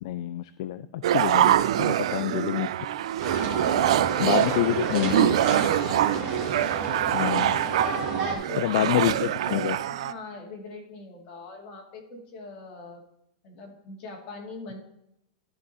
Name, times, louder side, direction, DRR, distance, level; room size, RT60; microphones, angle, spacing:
voice 1, 0.0-2.7 4.2-5.3 7.1-7.6 8.6-9.8, left 14 dB, 55° left, 13 dB, 0.3 m, -27 dB
sound 1, 1.0-10.1, right 12 dB, 65° right, 0.4 m, -25 dB
sound 2, 3.2-8.4, right 4 dB, 35° right, 2.3 m, -31 dB
voice 2, 3.6-4.6 4.9-6.4 8.2-8.9 10.0-13.0 13.4-14.8, left 2 dB, 35° left, 0 dB, 2.1 m, -41 dB
12.0 x 4.8 x 4.1 m, 0.78 s
supercardioid pair, 165°, 3 cm